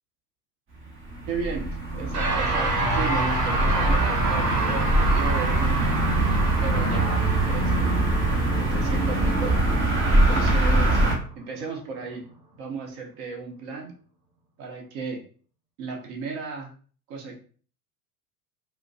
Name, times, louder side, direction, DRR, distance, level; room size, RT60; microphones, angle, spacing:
sound 1, 0.8-11.2, right 2 dB, 25° right, 1.2 m, -23 dB
voice 1, 1.3-6.0 6.6-9.6 10.1-11.0 11.4-12.3 12.6-13.9 14.6-15.2 15.8-16.7 17.1-17.4, right 4 dB, 45° right, 1 dB, 1.1 m, -35 dB
sound 2, 2.1-11.6, right 2 dB, 85° right, 1.2 m, -28 dB
4.9 x 2.3 x 2.4 m, 0.42 s
figure-of-eight pair, 75°, 46 cm